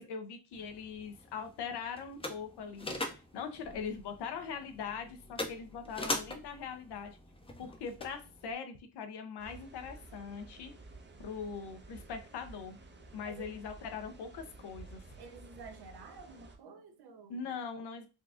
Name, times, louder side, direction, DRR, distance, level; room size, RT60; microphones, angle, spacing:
voice 1, 0.0-7.2 7.6-10.7 11.2-12.8 13.1-15.0 17.3-18.1, left 6 dB, 60° left, 0.8 m, -41 dB
sound 1, 0.5-8.5, left 1 dB, 10° left, 0.8 m, -42 dB
sound 2, 9.4-16.6, right 3 dB, 25° right, 0.8 m, -52 dB
voice 2, 13.2-13.6 15.2-17.6, right 5 dB, 60° right, 0.9 m, -51 dB
3.9 x 2.3 x 2.4 m
supercardioid pair, 70°, 44 cm